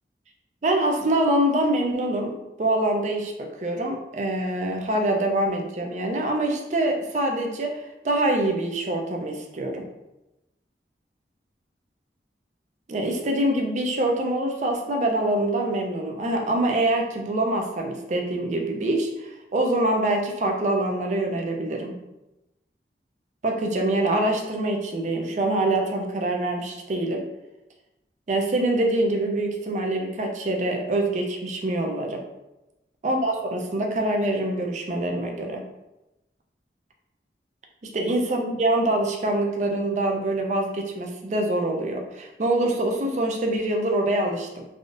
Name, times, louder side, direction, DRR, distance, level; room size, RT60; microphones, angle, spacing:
voice 1, 0.6-9.8 12.9-21.9 23.4-27.2 28.3-32.2 33.0-35.6 37.8-44.6, right 1 dB, 40° right, 2 dB, 0.4 m, -25 dB
3.4 x 2.5 x 2.5 m, 0.96 s
head